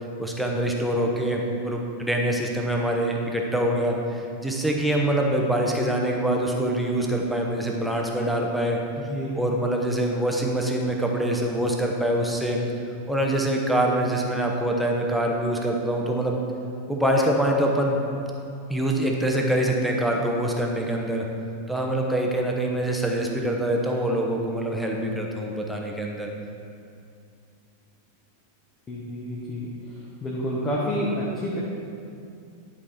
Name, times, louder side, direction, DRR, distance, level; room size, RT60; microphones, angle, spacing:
voice 1, 0.2-8.8 9.4-12.6 13.1-16.4 16.9-18.0 18.7-21.3 21.7-26.3, right 1 dB, ahead, 0 dB, 1.0 m, -24 dB
voice 2, 9.0-9.4 28.9-29.7 30.2-31.6, equal, 20° left, -5 dB, 1.2 m, -29 dB
10.5 x 4.9 x 4.3 m, 2.5 s
figure-of-eight pair, 90°, 0 cm